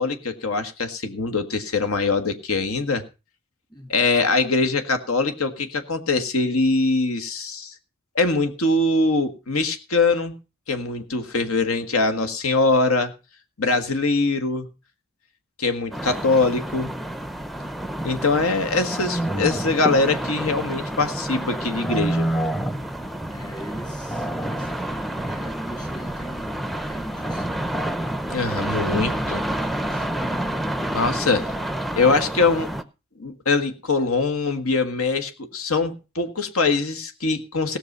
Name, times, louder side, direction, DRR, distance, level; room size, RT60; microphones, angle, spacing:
voice 1, 0.0-3.0 3.9-7.7 8.1-10.3 10.7-13.1 13.6-14.7 15.6-16.9 18.0-22.3 28.3-29.4 30.9-31.5 31.9-32.7 33.2-37.8, left 3 dB, 80° left, 1.6 m, -22 dB
sound 1, 15.9-32.8, right 1 dB, ahead, 0.6 m, -28 dB
voice 2, 23.3-27.7 28.6-30.4 30.6-31.3, equal, 20° left, 3.1 m, -40 dB
17.0 x 6.7 x 5.4 m
head